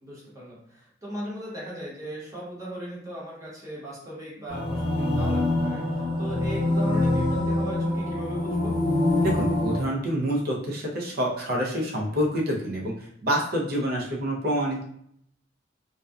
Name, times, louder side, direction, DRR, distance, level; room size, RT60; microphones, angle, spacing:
voice 1, 0.0-8.8, right 1 dB, 15° right, -6 dB, 0.8 m, -38 dB
sound 1, 4.5-9.8, left 1 dB, 25° left, 0.7 m, -25 dB
voice 2, 9.2-12.9 13.2-14.8, equal, 50° right, -2 dB, 0.5 m, -27 dB
2.6 x 2.2 x 2.3 m, 0.69 s
head